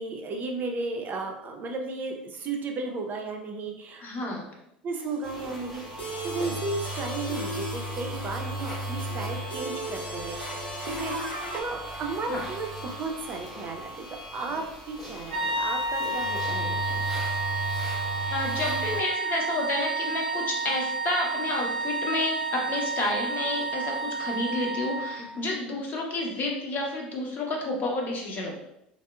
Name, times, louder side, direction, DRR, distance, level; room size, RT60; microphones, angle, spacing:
voice 1, 0.0-4.1 4.8-14.1 14.3-17.3 25.3-25.5, right 3 dB, 35° right, 3 dB, 0.5 m, -34 dB
voice 2, 4.0-4.5 12.3-12.4 18.3-28.6, left 2 dB, 40° left, 0 dB, 0.8 m, -30 dB
sound 1, 4.9-11.6, equal, 85° left, 0.5 m, -37 dB
sound 2, 5.2-19.0, right 1 dB, ahead, 0.9 m, -36 dB
sound 3, 15.3-25.3, right 3 dB, 90° right, 0.4 m, -30 dB
3.4 x 2.0 x 2.4 m, 0.81 s
hypercardioid pair, 75°, 5 cm